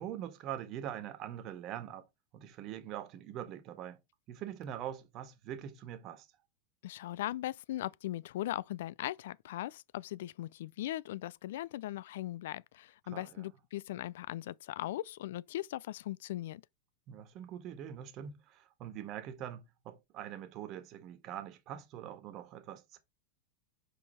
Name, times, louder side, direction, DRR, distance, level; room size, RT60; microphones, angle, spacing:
voice 1, 0.0-2.1 2.3-4.0 4.3-6.3 13.1-13.5 17.1-23.0, right 10 dB, 45° right, 1.4 m, -43 dB
voice 2, 6.8-16.6, left 14 dB, 70° left, 0.4 m, -39 dB
5.4 x 4.8 x 4.2 m
hypercardioid pair, 110°, 0 cm